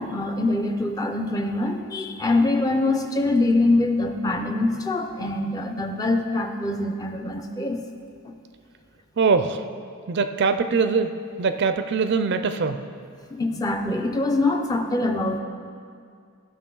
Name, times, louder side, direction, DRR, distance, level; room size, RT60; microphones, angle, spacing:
voice 1, 0.0-7.8 8.3-8.4 13.3-15.4, left 2 dB, 15° left, 5 dB, 0.5 m, -24 dB
voice 2, 9.2-9.6 10.1-11.1 11.4-12.8, right 5 dB, 50° right, 9 dB, 0.4 m, -22 dB
14.5 x 6.0 x 3.8 m, 2.3 s
head